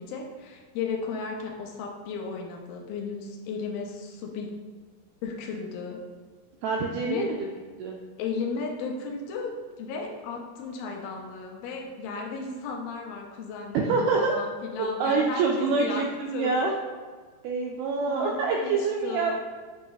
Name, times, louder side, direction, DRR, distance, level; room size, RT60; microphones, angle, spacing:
voice 1, 0.0-4.6 5.2-6.0 7.1-7.4 8.2-9.5 9.8-16.0 16.3-16.6 18.1-19.4, left 4 dB, 75° left, 0 dB, 2.3 m, -35 dB
voice 2, 6.6-7.5 7.8-8.0 13.7-14.3 15.0-16.8 17.4-19.6, right 4 dB, 85° right, 0 dB, 2.2 m, -26 dB
8.4 x 3.0 x 4.0 m, 1.5 s
omnidirectional pair, 5.0 m